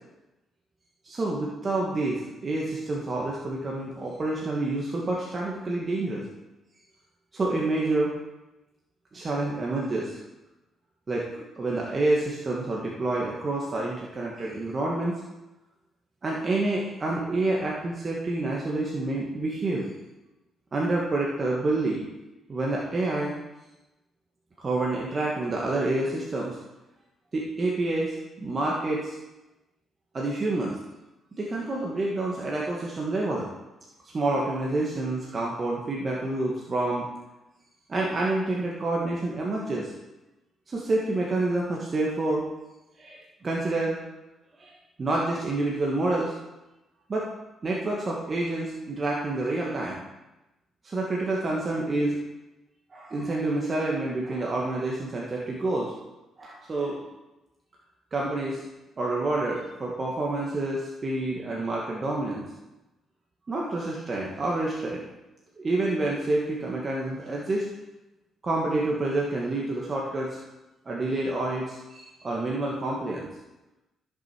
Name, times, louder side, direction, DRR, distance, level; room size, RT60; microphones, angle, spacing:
voice 1, 1.0-6.2 7.3-8.1 9.1-10.2 11.1-15.2 16.2-19.9 20.7-22.1 22.5-23.3 24.6-26.6 27.3-29.2 30.1-30.8 31.3-33.5 34.1-37.1 37.9-39.9 40.7-42.4 43.0-44.0 44.6-46.3 47.1-47.3 47.6-50.0 50.8-52.2 52.9-55.9 56.4-57.0 58.1-58.6 59.0-62.5 63.5-65.1 65.6-67.7 68.4-70.4 70.9-73.3, right 2 dB, 35° right, -3 dB, 1.7 m, -28 dB
14.5 x 6.7 x 4.6 m, 1.0 s
cardioid pair, 90°, 0 cm